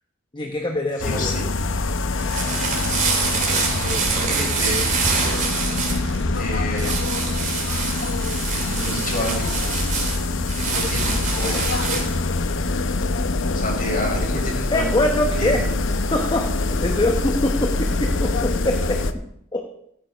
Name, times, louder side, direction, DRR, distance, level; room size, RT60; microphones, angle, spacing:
voice 1, 0.3-1.5 14.7-15.6 16.1-19.0 19.5-19.6, left 1 dB, 20° left, 3 dB, 1.0 m, -23 dB
sound 1, 1.0-19.1, left 3 dB, 65° left, 0.8 m, -25 dB
voice 2, 1.0-1.4 3.7-5.4 6.4-7.2 8.5-9.9 10.6-11.7 13.5-15.7, left 1 dB, 40° left, -2 dB, 5.0 m, -30 dB
sound 2, 2.0-12.2, right 4 dB, 40° right, 2.8 m, -26 dB
15.0 x 8.8 x 5.1 m, 0.73 s
head